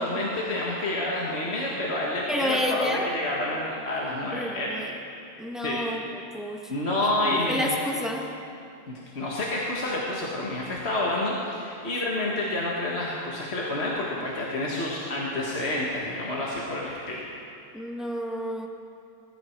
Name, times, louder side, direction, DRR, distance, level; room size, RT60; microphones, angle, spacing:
voice 1, 0.0-4.7 5.6-5.8 6.7-7.7 8.9-17.2, left 1 dB, 45° left, -4 dB, 1.9 m, -29 dB
voice 2, 2.3-3.1 4.3-4.9 5.4-6.7 7.2-8.3 17.7-18.7, equal, ahead, 0 dB, 1.4 m, -30 dB
20.5 x 14.0 x 4.6 m, 2.6 s
omnidirectional pair, 1.6 m